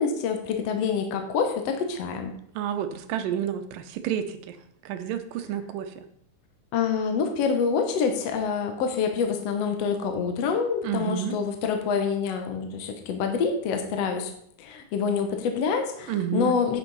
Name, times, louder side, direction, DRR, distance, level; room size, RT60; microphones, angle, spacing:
voice 1, 0.0-2.3 6.7-14.3 14.6-16.8, left 6 dB, 60° left, 5 dB, 1.8 m, -26 dB
voice 2, 2.6-4.6 4.9-6.0 10.8-11.4 16.1-16.6, right 9 dB, 80° right, 9 dB, 2.5 m, -30 dB
10.0 x 8.9 x 4.1 m, 0.69 s
omnidirectional pair, 4.0 m